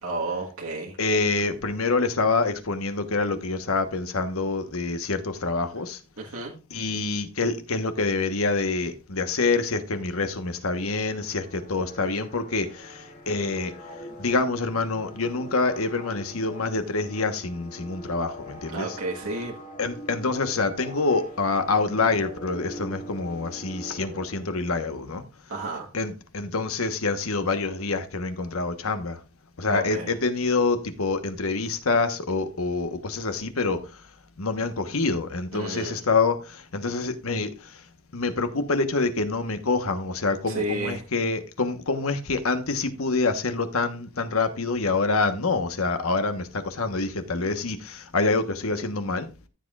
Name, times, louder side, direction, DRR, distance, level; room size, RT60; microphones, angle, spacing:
voice 1, 0.0-1.0 6.2-6.5 18.7-19.5 25.5-25.9 29.7-30.1 35.5-36.0 40.5-41.0, right 2 dB, 85° right, 1.5 m, -31 dB
voice 2, 1.0-6.0 6.7-12.9 13.3-13.7 14.2-19.0 19.8-25.2 25.9-29.2 29.6-33.8 34.4-36.4 36.7-37.5 38.1-49.3, left 3 dB, 85° left, 1.2 m, -26 dB
sound 1, 10.7-24.8, equal, 40° left, 2.2 m, -43 dB
14.0 x 7.5 x 2.4 m
head